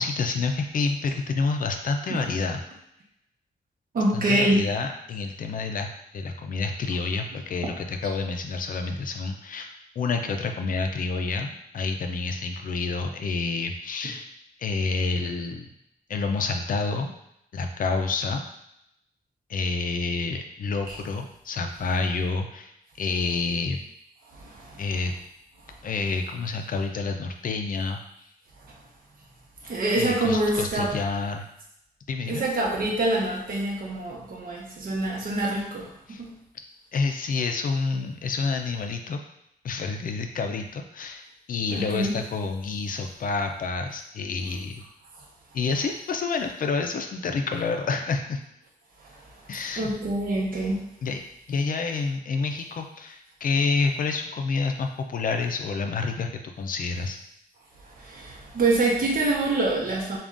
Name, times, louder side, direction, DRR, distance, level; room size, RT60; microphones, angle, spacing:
voice 1, 0.0-2.6 4.1-5.9 6.1-14.3 14.6-15.7 16.1-17.1 17.5-18.4 19.5-22.7 23.0-23.8 24.8-25.1 25.8-28.0 30.0-31.5 32.1-32.4 36.1-36.2 36.9-39.2 39.6-44.8 45.5-48.4 49.5-49.9 51.0-51.2 51.5-56.3 56.6-57.2, left 4 dB, 60° left, 5 dB, 0.5 m, -28 dB
voice 2, 3.9-4.7 20.9-21.0 24.3-24.9 25.6-25.8 28.6-28.8 29.6-31.0 32.3-36.4 41.7-42.2 45.2-45.3 49.0-50.8 57.8-60.2, right 2 dB, 65° right, -2 dB, 1.0 m, -26 dB
7.0 x 2.4 x 2.5 m, 0.79 s
wide cardioid pair, 170°, 16 cm